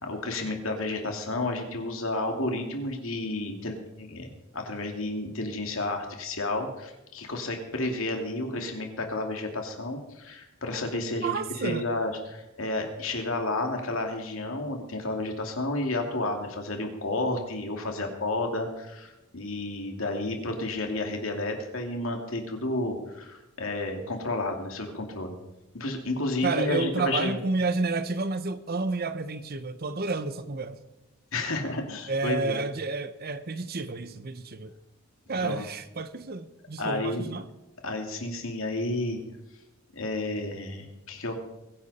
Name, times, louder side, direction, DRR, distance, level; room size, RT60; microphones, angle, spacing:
voice 1, 0.0-25.4 25.7-27.4 31.3-32.6 35.4-35.7 36.8-37.3 37.8-39.2 39.9-41.4, left 2 dB, 65° left, 2.6 m, -31 dB
voice 2, 11.1-11.8 26.4-30.8 32.1-34.7 35.3-37.5, right 3 dB, 45° right, 0.8 m, -30 dB
22.0 x 10.5 x 4.3 m
head